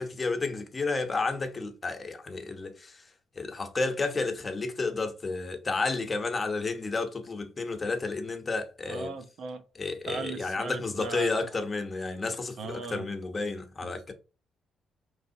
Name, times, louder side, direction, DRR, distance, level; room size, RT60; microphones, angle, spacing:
voice 1, 0.0-3.0 3.4-9.1 9.8-14.1, left 3 dB, 30° left, 0.9 m, -31 dB
voice 2, 8.9-9.6 10.0-11.6 12.6-13.1 13.8-14.1, right 4 dB, 65° right, 0.7 m, -39 dB
4.7 x 3.3 x 2.7 m
cardioid pair, 90°, 0 cm